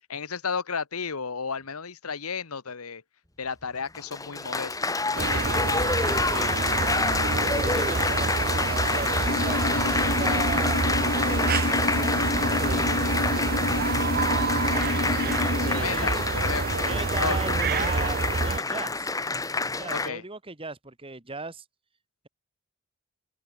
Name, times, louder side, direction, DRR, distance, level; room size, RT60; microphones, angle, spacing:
voice 1, 0.0-3.0 3.4-4.8 5.1-5.6 15.8-18.1 19.9-20.2, left 5 dB, 80° left, 1.2 m, -33 dB
Applause, 3.9-20.1, left 3 dB, 15° left, 1.9 m, -28 dB
sound 1, 5.1-18.6, right 4 dB, 45° right, 0.8 m, -28 dB
voice 2, 6.2-6.8 7.6-11.6 12.4-13.1 14.6-14.8 15.6-16.2 16.7-19.1 19.8-21.6, right 3 dB, 25° right, 2.2 m, -38 dB
sound 2, 9.2-15.8, left 4 dB, 50° left, 0.6 m, -30 dB
open air
head